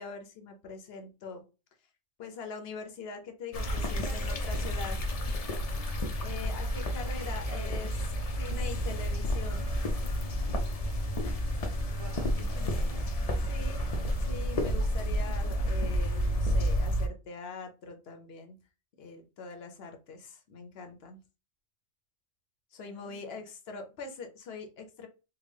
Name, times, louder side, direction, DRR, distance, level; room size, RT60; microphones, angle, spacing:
voice 1, 0.0-1.4 2.2-5.0 6.2-7.9 8.4-9.7 13.5-13.8 14.2-18.6 19.0-21.2 22.7-25.1, left 4 dB, 60° left, 5 dB, 0.7 m, -43 dB
sound 1, 3.5-17.1, equal, 75° left, 0.3 m, -30 dB
voice 2, 3.7-5.0 7.3-7.9 11.9-13.0 22.8-23.5, right 3 dB, 35° right, -1 dB, 0.6 m, -49 dB
3.6 x 2.2 x 3.2 m, 0.31 s
omnidirectional pair, 1.4 m